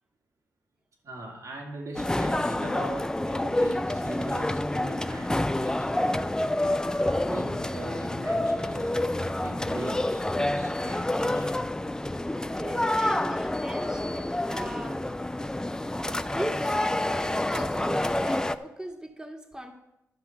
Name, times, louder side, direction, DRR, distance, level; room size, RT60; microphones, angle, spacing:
voice 1, 1.0-11.7, right 2 dB, 65° right, 0 dB, 2.2 m, -41 dB
sound 1, 2.0-18.6, left 1 dB, 10° left, 0.5 m, -28 dB
voice 2, 12.5-15.0 16.3-19.7, right 1 dB, 10° right, 3 dB, 1.8 m, -38 dB
12.0 x 5.8 x 5.8 m, 0.87 s
cardioid pair, 55°, 6 cm